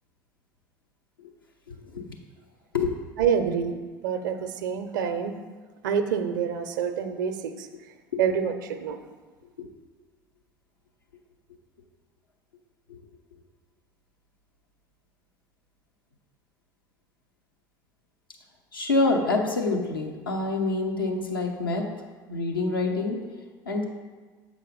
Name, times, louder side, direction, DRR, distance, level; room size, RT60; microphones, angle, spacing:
voice 1, 1.7-2.1 2.7-2.9 8.1-8.3 12.9-13.0 18.7-21.8 22.3-23.2 23.6-23.8, left 3 dB, 85° left, 0 dB, 0.8 m, -26 dB
voice 2, 3.2-3.8 4.0-5.3 5.8-7.7 8.2-9.0, right 7 dB, 65° right, 8 dB, 0.5 m, -27 dB
7.4 x 4.7 x 4.1 m, 1.4 s
figure-of-eight pair, 65°, 11 cm